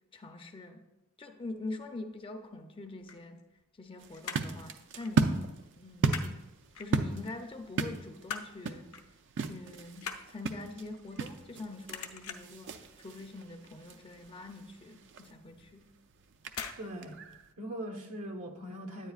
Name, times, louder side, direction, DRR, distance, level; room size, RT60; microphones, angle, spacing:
voice 1, 0.1-0.8 1.2-3.4 3.7-5.4 5.8-6.4 6.8-8.9 9.5-15.9, left 2 dB, 25° left, 6 dB, 0.5 m, -44 dB
sound 1, 2.8-3.9 4.1-4.6 5.0-5.2 5.5-6.3 6.7-7.3 7.8-8.6 8.9-9.1 9.5-11.6 11.9-12.6 13.1-13.4 13.6-13.7 14.1-14.2 14.7-14.8 15.6-15.9 16.5-16.8 17.1-17.2, left 6 dB, 65° left, 0.6 m, -42 dB
sound 2, 4.0-17.5, right 4 dB, 55° right, 0.4 m, -36 dB
voice 2, 16.8-17.2 17.6-19.1, equal, 80° right, 2 dB, 1.2 m, -40 dB
9.9 x 9.0 x 2.4 m, 0.98 s
head